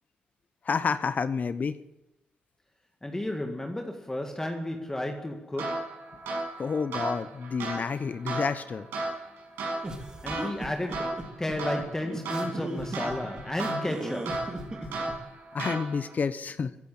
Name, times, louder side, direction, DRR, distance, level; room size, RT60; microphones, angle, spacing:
voice 1, 0.6-1.8 6.6-8.9 14.8-14.9 15.5-16.8, left 5 dB, 50° left, 0.9 m, -29 dB
voice 2, 3.0-6.0 10.2-14.6, left 1 dB, 15° left, 1.9 m, -33 dB
sound 1, 5.6-16.2, right 2 dB, 85° right, 6.0 m, -35 dB
sound 2, 9.8-15.2, right 1 dB, 25° right, 3.3 m, -37 dB
15.5 x 9.5 x 8.6 m
supercardioid pair, 55°, 4 cm